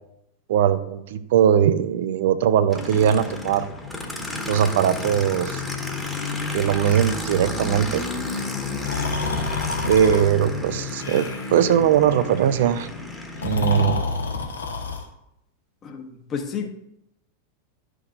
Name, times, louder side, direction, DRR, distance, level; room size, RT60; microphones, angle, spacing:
voice 1, 0.5-3.7 4.5-5.6 6.5-8.0 9.9-12.9 13.4-14.0, right 9 dB, 55° right, 13 dB, 0.5 m, -20 dB
Aircraft, 2.7-13.9, left 3 dB, 5° left, 1.3 m, -31 dB
Breathing, 8.8-10.2 11.0-11.7 13.3-15.1, left 4 dB, 70° left, 1.4 m, -28 dB
voice 2, 15.8-16.7, left 6 dB, 25° left, 4 dB, 1.2 m, -31 dB
12.0 x 6.2 x 2.6 m, 0.81 s
figure-of-eight pair, 90°, 0 cm